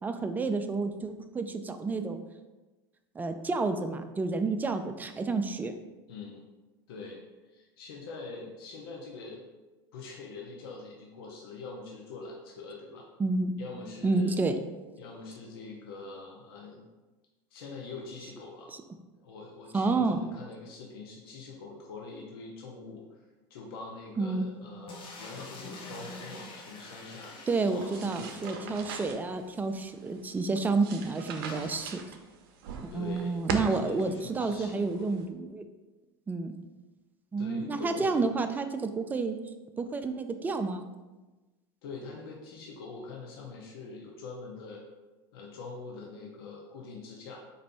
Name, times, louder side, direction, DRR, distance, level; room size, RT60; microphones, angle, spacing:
voice 1, 0.0-2.2 3.2-5.7 13.2-13.5 14.0-14.6 19.7-20.2 24.2-24.5 27.5-32.0 32.9-35.6 36.3-36.6 37.3-39.4 39.8-40.8, right 3 dB, 15° right, 8 dB, 0.3 m, -30 dB
voice 2, 6.1-6.4 6.9-9.5 9.9-13.1 13.6-14.4 15.0-16.8 17.5-18.7 19.1-23.2 23.5-27.4 27.7-29.0 32.9-35.1 37.4-38.5 41.8-44.8 45.3-47.4, left 4 dB, 80° left, 0 dB, 0.6 m, -44 dB
sound 1, 24.9-29.1 29.4-29.5 29.7-29.8 31.5-31.8, left 2 dB, 45° left, 0.8 m, -46 dB
sound 2, 27.8-35.3, right 5 dB, 75° right, 0.5 m, -41 dB
4.0 x 2.5 x 3.4 m, 1.2 s
hypercardioid pair, 95°, 12 cm